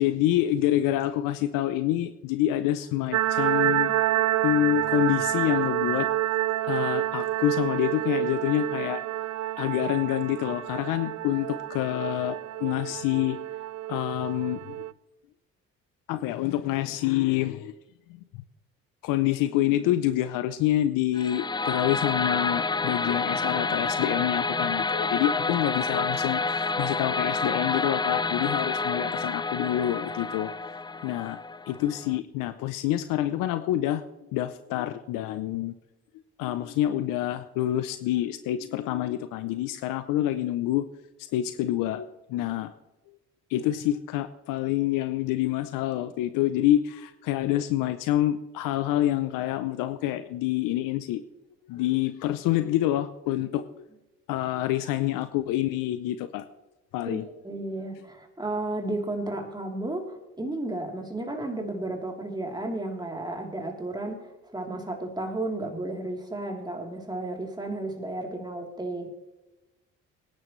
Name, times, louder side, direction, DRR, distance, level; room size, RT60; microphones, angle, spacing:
voice 1, 0.0-6.1 6.6-9.0 9.6-13.4 13.9-14.8 16.1-17.7 18.1-18.2 19.0-30.5 31.0-31.4 31.7-34.0 34.3-35.7 36.4-40.8 41.3-42.7 43.5-51.2 51.7-53.8 54.3-56.5 56.9-57.2, left 13 dB, 85° left, 12 dB, 0.7 m, -27 dB
sound 1, 3.1-14.9, right 13 dB, 55° right, 0.5 m, -28 dB
sound 2, 21.1-32.2, left 3 dB, 15° left, 0.4 m, -29 dB
voice 2, 57.0-69.1, right 2 dB, 15° right, 2 dB, 3.3 m, -33 dB
19.0 x 10.5 x 3.2 m, 1.0 s
supercardioid pair, 65°, 32 cm